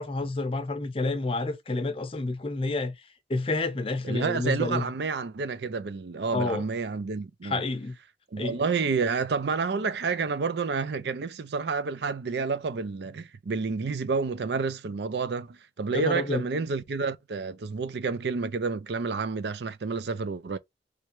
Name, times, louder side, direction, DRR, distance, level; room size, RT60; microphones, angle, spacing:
voice 1, 0.0-3.0 3.3-4.9 6.3-6.6 7.4-8.0 8.4-8.6 15.9-16.5, left 2 dB, 30° left, 0.6 m, -29 dB
voice 2, 4.0-7.6 8.3-20.6, right 4 dB, 70° right, 0.5 m, -29 dB
3.4 x 3.3 x 3.1 m
head